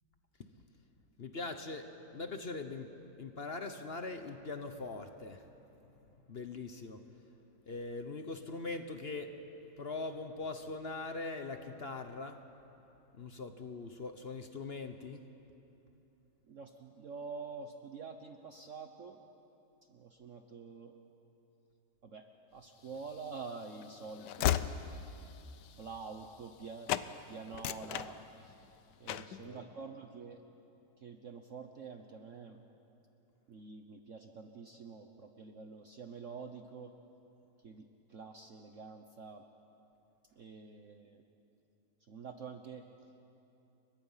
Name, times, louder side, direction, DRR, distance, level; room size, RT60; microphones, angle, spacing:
voice 1, 1.2-1.8 2.1-2.9 3.2-5.4 6.3-7.0 7.7-9.3 9.8-12.4 13.1-15.2 29.1-29.6, left 3 dB, 40° left, 7 dB, 1.0 m, -41 dB
voice 2, 16.5-19.2 19.9-20.9 22.0-24.9 25.7-26.9 27.3-28.5 29.0-30.4 31.0-32.6 33.5-36.9 37.6-39.4 40.4-41.2 42.0-43.1, right 4 dB, 50° right, 5 dB, 1.2 m, -47 dB
Train / Slam, 23.0-26.6 26.9-27.1 27.5-28.7 29.1-29.4, left 11 dB, 75° left, 1.3 m, -36 dB
29.5 x 23.0 x 5.7 m, 2.9 s
omnidirectional pair, 1.9 m